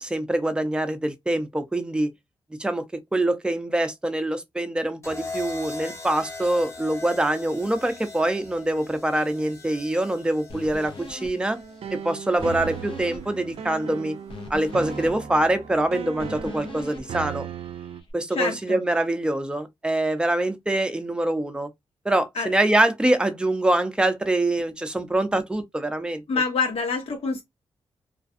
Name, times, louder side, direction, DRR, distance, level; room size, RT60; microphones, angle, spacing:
voice 1, 0.0-2.1 2.6-11.6 11.9-14.1 14.5-17.5 18.1-21.7 22.0-26.2, right 1 dB, 10° right, 0.6 m, -24 dB
sound 1, 5.0-13.2 14.4-14.8, left 3 dB, 30° left, 0.8 m, -40 dB
sound 2, 10.5-18.1, left 3 dB, 65° left, 0.7 m, -42 dB
sound 3, 11.5-18.0, right 8 dB, 80° right, 0.4 m, -37 dB
voice 2, 18.3-18.8 22.3-22.5 26.3-27.4, left 4 dB, 80° left, 1.0 m, -26 dB
2.4 x 2.2 x 2.5 m
cardioid pair, 75°, 10 cm